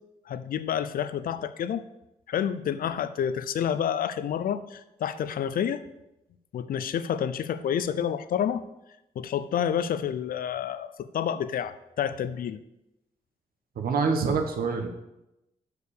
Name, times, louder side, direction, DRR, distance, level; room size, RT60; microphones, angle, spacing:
voice 1, 0.3-1.8 2.3-5.8 6.5-8.6 9.2-12.6, left 9 dB, 75° left, 13 dB, 0.5 m, -29 dB
voice 2, 13.8-14.9, right 5 dB, 85° right, 5 dB, 1.1 m, -26 dB
6.6 x 4.8 x 6.9 m, 0.91 s
wide cardioid pair, 115°, 15 cm